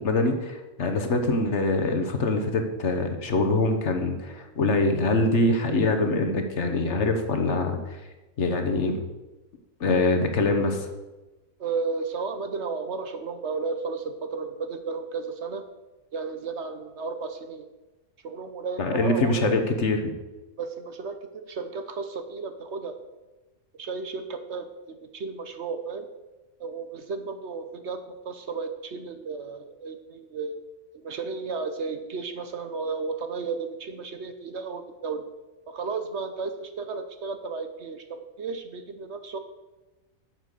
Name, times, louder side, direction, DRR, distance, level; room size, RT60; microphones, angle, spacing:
voice 1, 0.0-7.8 8.4-8.9 9.8-10.9 18.8-20.1, left 2 dB, 55° left, 5 dB, 1.4 m, -24 dB
voice 2, 11.6-15.6 16.1-17.7 18.2-19.6 20.6-23.0 23.8-26.1 26.6-28.0 28.2-30.6 30.9-35.2 35.7-38.0 38.4-39.4, right 4 dB, 55° right, 8 dB, 1.1 m, -33 dB
9.0 x 7.6 x 6.5 m, 1.1 s
omnidirectional pair, 1.4 m